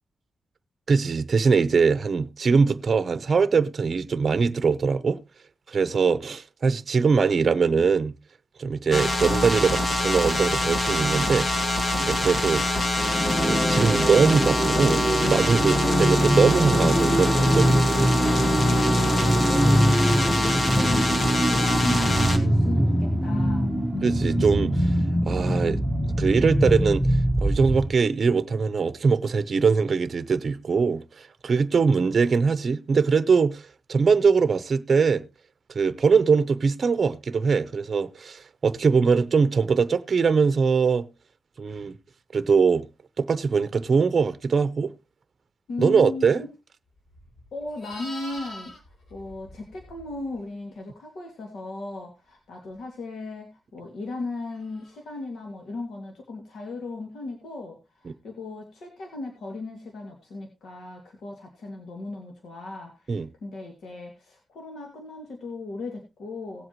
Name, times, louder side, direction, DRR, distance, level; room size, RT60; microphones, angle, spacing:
voice 1, 0.9-5.2 5.7-8.1 8.6-11.5 12.0-12.6 13.4-18.1 24.0-24.9 25.3-25.8 26.2-35.2 35.7-41.1 41.6-41.9 42.3-42.8 43.2-44.9 45.8-46.4 63.1-63.3, right 5 dB, 45° right, 0.7 m, -22 dB
sound 1, 8.9-22.4, left 1 dB, 35° left, 1.7 m, -25 dB
sound 2, 13.0-27.9, equal, 5° right, 1.2 m, -23 dB
voice 2, 18.9-23.7 45.7-46.5 47.5-66.7, left 3 dB, 75° left, 2.4 m, -37 dB
Livestock farm animals working animals, 47.1-50.4 54.7-55.0, left 1 dB, 60° left, 4.5 m, -43 dB
18.0 x 7.8 x 3.0 m
cardioid pair, 105°, 0 cm